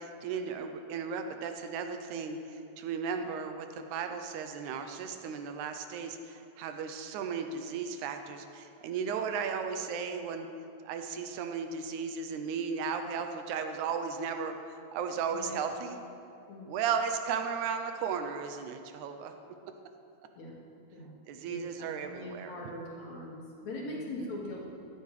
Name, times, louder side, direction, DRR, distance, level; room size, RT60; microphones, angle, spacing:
voice 1, 0.0-10.5 10.8-16.0 16.7-19.3 21.3-22.6 23.9-24.3, right 6 dB, 90° right, 6 dB, 2.1 m, -35 dB
voice 2, 15.3-15.6 16.5-16.7 20.4-20.6 20.9-21.1 21.5-24.7, left 1 dB, 70° left, -4 dB, 3.3 m, -41 dB
16.5 x 12.5 x 3.3 m, 2.7 s
omnidirectional pair, 3.4 m